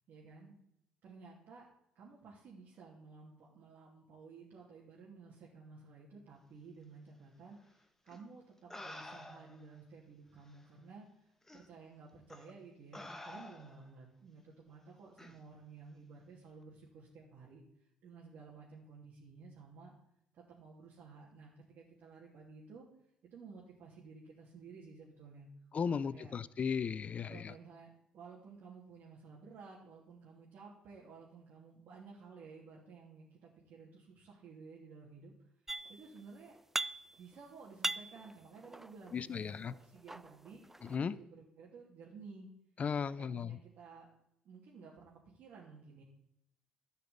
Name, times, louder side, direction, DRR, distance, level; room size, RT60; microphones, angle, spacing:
voice 1, 0.1-0.6 1.0-1.7 1.9-11.1 11.5-17.6 18.0-19.9 20.3-22.9 23.2-25.5 25.8-26.3 27.2-35.3 35.9-36.6 37.2-42.5 43.0-44.1 44.4-46.0, right 4 dB, 65° right, 2.9 m, -54 dB
sound 1, 8.1-8.2 8.7-9.7 10.5-10.6 11.5-11.7 12.3-12.5 12.9-13.9 15.2-15.4, left 1 dB, 10° left, 1.6 m, -49 dB
voice 2, 25.7-27.3 39.1-39.7 40.9-41.2 42.8-43.6, left 6 dB, 45° left, 0.6 m, -35 dB
sound 2, 35.7-36.2 36.5-37.3 37.6-39.2 39.8-41.0, right 2 dB, 10° right, 0.3 m, -40 dB
12.0 x 5.6 x 8.7 m
hypercardioid pair, 60°, 3 cm